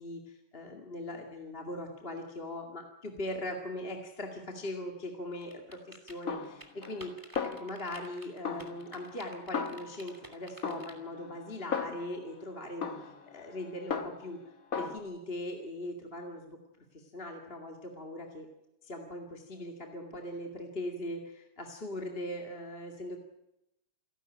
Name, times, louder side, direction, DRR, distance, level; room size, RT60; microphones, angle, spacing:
voice 1, 0.0-7.2 7.6-14.4 14.7-16.6 16.9-18.5 18.8-23.2, left 1 dB, 25° left, 1 dB, 2.4 m, -40 dB
sound 1, 5.4-10.9, right 1 dB, 10° right, 2.6 m, -50 dB
Snare drum, 6.3-7.1 7.4-8.1 8.4-10.2 10.6-12.3 12.8-14.4 14.7-15.0, left 6 dB, 45° left, 1.6 m, -37 dB
28.0 x 12.0 x 9.2 m, 0.89 s
omnidirectional pair, 2.3 m